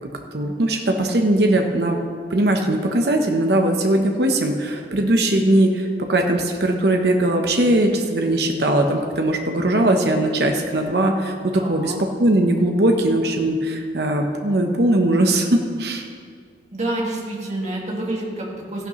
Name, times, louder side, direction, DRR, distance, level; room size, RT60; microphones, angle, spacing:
voice 1, 0.0-2.0 2.3-11.9 12.2-16.1, right 1 dB, 65° right, 3 dB, 0.9 m, -20 dB
voice 2, 11.5-12.0 16.7-18.9, right 1 dB, 40° right, -3 dB, 2.0 m, -28 dB
14.5 x 11.5 x 3.1 m, 2.1 s
head